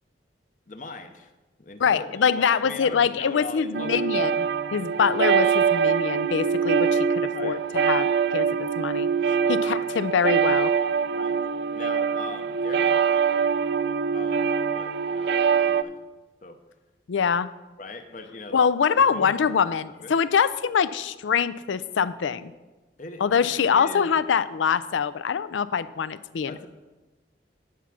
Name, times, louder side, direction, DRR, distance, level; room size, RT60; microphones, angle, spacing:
voice 1, 0.7-1.3 1.6-4.9 7.3-7.6 9.5-9.8 11.1-11.4 11.7-13.5 14.1-16.0 16.4-16.6 17.8-18.6 19.0-20.2 23.0-24.1 26.5-26.7, left 3 dB, 45° left, 8 dB, 0.7 m, -41 dB
voice 2, 1.8-4.5 4.7-7.6 7.9-10.7 17.1-17.5 18.5-22.5 23.2-26.5, left 6 dB, 85° left, 15 dB, 0.4 m, -24 dB
sound 1, 3.7-15.8, right 6 dB, 65° right, 0.3 m, -24 dB
10.0 x 6.1 x 5.8 m, 1.2 s
head